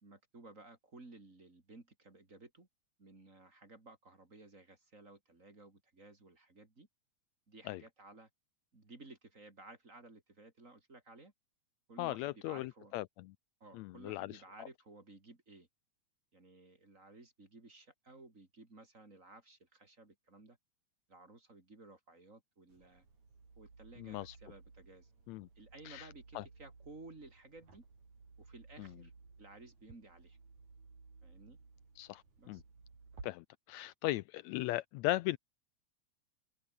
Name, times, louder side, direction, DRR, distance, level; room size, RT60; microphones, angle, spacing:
voice 1, 0.0-2.7 3.0-6.9 7.5-8.3 8.7-11.3 11.9-12.9 13.6-15.7 16.3-20.6 21.1-23.0 23.6-25.1 25.6-27.9 28.4-29.1 29.4-30.4 31.2-31.6 32.4-32.6, right 2 dB, 25° right, 3.4 m, -56 dB
voice 2, 12.0-13.3 13.7-14.3 14.6-14.7 24.0-24.4 25.3-25.5 25.9-26.1 26.4-26.5 28.8-28.9 32.0-32.6 33.2-35.4, left 17 dB, 80° left, 1.8 m, -38 dB
sound 1, 22.7-33.3, right 4 dB, 70° right, 7.4 m, -58 dB
omnidirectional pair, 3.4 m